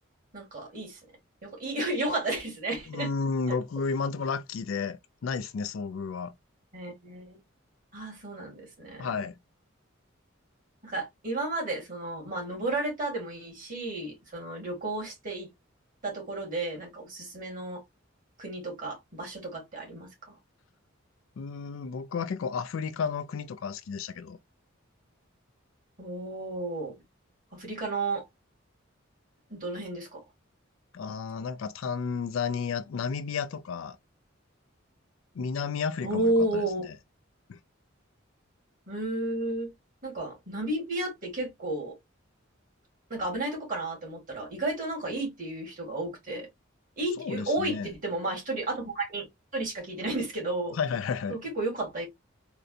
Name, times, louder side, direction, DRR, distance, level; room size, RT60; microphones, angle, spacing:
voice 1, 0.3-1.0 1.4-3.1 3.5-3.6 6.7-7.4 7.9-9.1 10.8-15.5 16.0-17.8 18.4-20.4 26.0-27.0 27.6-28.2 29.5-30.2 36.0-36.9 38.9-39.7 40.0-41.9 43.1-46.5 47.0-49.3 49.5-50.8 51.3-52.1, right 2 dB, 40° right, 2.0 m, -32 dB
voice 2, 2.9-6.4 9.0-9.3 21.4-24.4 30.9-34.0 35.3-36.7 37.5-37.6 47.2-47.9 50.7-51.4, left 5 dB, 75° left, 0.4 m, -32 dB
3.9 x 2.2 x 2.4 m
head